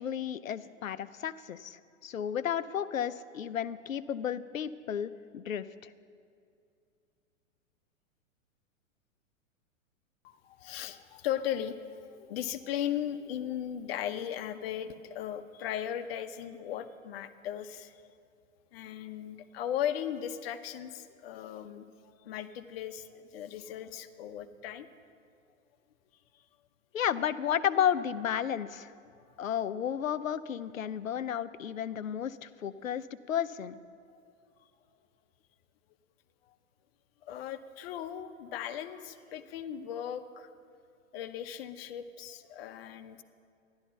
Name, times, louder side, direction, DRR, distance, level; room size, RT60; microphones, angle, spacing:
voice 1, 0.0-5.9 26.9-28.9 29.4-33.8, left 9 dB, 80° left, 15 dB, 0.6 m, -33 dB
voice 2, 10.2-18.0 18.7-24.9 26.3-26.4 36.5-36.6 37.2-40.5 41.1-43.2, left 10 dB, 50° left, 10 dB, 0.9 m, -37 dB
14.5 x 11.5 x 5.8 m, 2.4 s
figure-of-eight pair, 105°, 40 cm